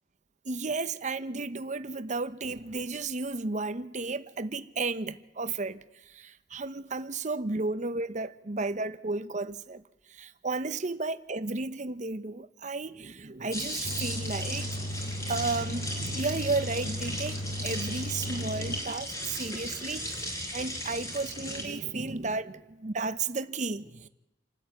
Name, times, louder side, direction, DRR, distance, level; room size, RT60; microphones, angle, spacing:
voice 1, 0.4-9.8 10.1-14.7 15.3-20.2 20.5-24.1, right 3 dB, 40° right, 0.9 m, -33 dB
sound 1, 13.5-21.6, equal, 15° left, 4.7 m, -37 dB
sound 2, 13.8-18.8, equal, 35° left, 0.9 m, -36 dB
27.5 x 13.5 x 9.4 m
head